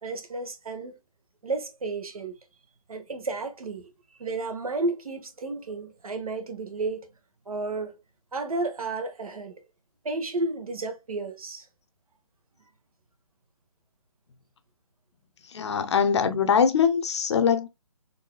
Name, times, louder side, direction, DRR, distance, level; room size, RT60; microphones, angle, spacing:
voice 1, 0.0-0.9 1.4-2.3 2.9-3.9 4.2-7.1 7.5-8.0 8.3-9.5 10.0-11.7, right 3 dB, 80° right, 1.0 m, -32 dB
voice 2, 15.5-17.7, left 7 dB, 50° left, 0.6 m, -22 dB
4.0 x 2.6 x 2.3 m
hypercardioid pair, 150°, 18 cm